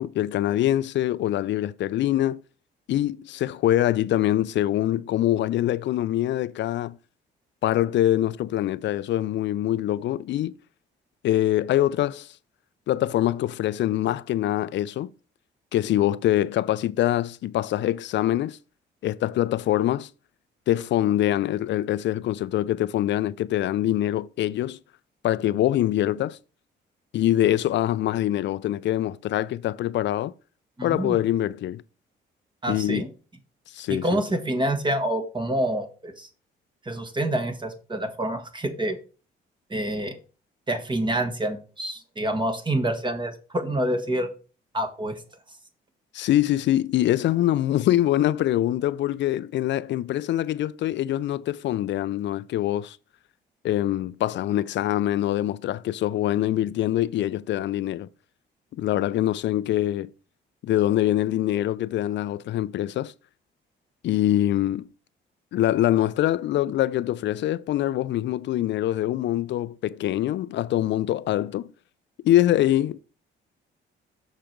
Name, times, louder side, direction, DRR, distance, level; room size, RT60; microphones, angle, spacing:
voice 1, 0.0-2.4 2.9-7.0 7.6-10.5 11.2-12.3 12.9-15.1 15.7-18.6 19.0-20.1 20.7-24.8 25.2-26.4 27.1-30.3 30.8-31.8 32.7-33.0 33.7-34.2 46.1-53.0 53.6-58.1 58.8-60.1 60.6-63.1 64.0-64.9 65.5-71.7 72.2-73.0, left 13 dB, 65° left, 0.4 m, -24 dB
voice 2, 30.8-31.2 32.6-33.1 33.9-36.3 36.8-39.0 39.7-40.2 40.7-44.3 44.7-45.2, right 1 dB, 25° right, 1.5 m, -27 dB
6.5 x 5.1 x 4.5 m
cardioid pair, 90°, 20 cm